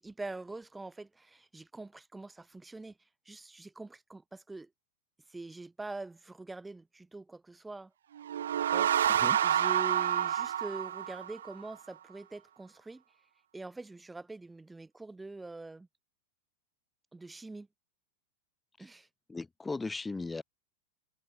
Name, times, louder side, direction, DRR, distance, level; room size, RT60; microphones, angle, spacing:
voice 1, 0.0-3.0 3.2-4.7 5.3-7.9 8.7-8.9 9.4-13.0 13.5-15.9 17.1-17.7 18.8-19.1, right 2 dB, 10° right, 6.7 m, -44 dB
sound 1, 8.2-11.7, right 10 dB, 65° right, 0.5 m, -28 dB
voice 2, 9.1-9.4 19.3-20.4, left 3 dB, 10° left, 2.2 m, -37 dB
figure-of-eight pair, 90°, 0 cm